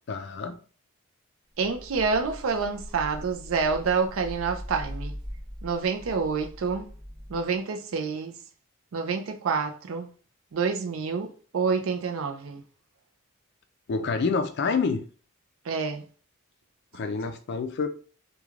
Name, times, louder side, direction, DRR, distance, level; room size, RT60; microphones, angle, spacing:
voice 1, 0.1-0.6 13.9-15.0 16.9-17.9, left 4 dB, 50° left, 0.3 m, -27 dB
sound 1, 1.6-7.6, equal, 15° right, 1.0 m, -41 dB
voice 2, 1.6-5.1 5.6-6.9 7.3-8.3 8.9-10.1 10.5-12.6 15.6-16.0, right 5 dB, 75° right, 0.4 m, -28 dB
3.1 x 2.2 x 2.4 m
head